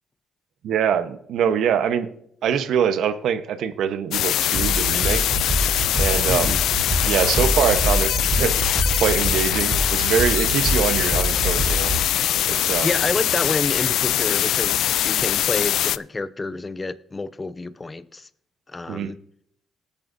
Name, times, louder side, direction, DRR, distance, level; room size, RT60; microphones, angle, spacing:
voice 1, 0.6-2.1 2.4-5.3 6.0-6.5 7.1-8.6 9.0-11.9 12.5-12.9 18.9-19.1, right 8 dB, 75° right, 1.0 m, -23 dB
sound 1, 4.1-16.0, left 12 dB, 80° left, 0.3 m, -22 dB
sound 2, 4.5-12.0, right 1 dB, 35° right, 2.4 m, -26 dB
voice 2, 6.3-6.6 12.8-18.3 18.7-19.2, left 3 dB, 25° left, 0.8 m, -28 dB
19.5 x 8.9 x 2.7 m
cardioid pair, 90°, 0 cm